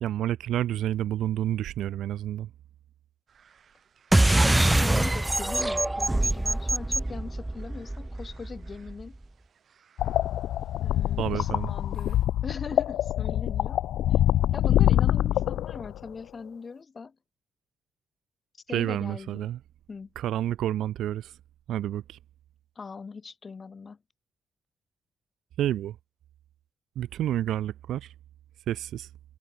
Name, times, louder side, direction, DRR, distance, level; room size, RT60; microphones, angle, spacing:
voice 1, 0.0-2.5 11.2-11.7 18.7-19.6 20.2-21.3 21.7-22.2 25.6-26.0 27.0-28.1 28.7-29.1, right 12 dB, 75° right, 0.4 m, -29 dB
sound 1, 3.3-12.3, right 7 dB, 45° right, 6.9 m, -63 dB
sound 2, 4.1-9.0, right 1 dB, 10° right, 0.6 m, -24 dB
voice 2, 4.3-9.2 10.8-13.8 14.1-14.2 14.5-17.2 18.7-19.5 19.9-20.1 22.8-24.0, left 5 dB, 30° left, 4.0 m, -40 dB
sound 3, 10.0-16.1, left 12 dB, 80° left, 0.7 m, -25 dB
cardioid pair, 125°, 0 cm